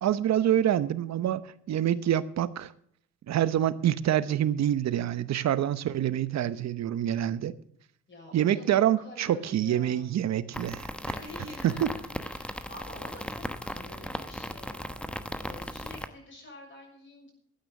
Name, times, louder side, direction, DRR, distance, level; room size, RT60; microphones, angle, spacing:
voice 1, 0.0-2.7 3.3-7.5 8.3-11.1 11.6-11.9, right 11 dB, 60° right, 0.9 m, -26 dB
voice 2, 8.1-10.1 11.0-17.3, left 2 dB, 40° left, 6.6 m, -48 dB
sound 1, 10.5-16.1, equal, 5° left, 1.0 m, -37 dB
12.5 x 9.1 x 7.1 m
cardioid pair, 90°, 30 cm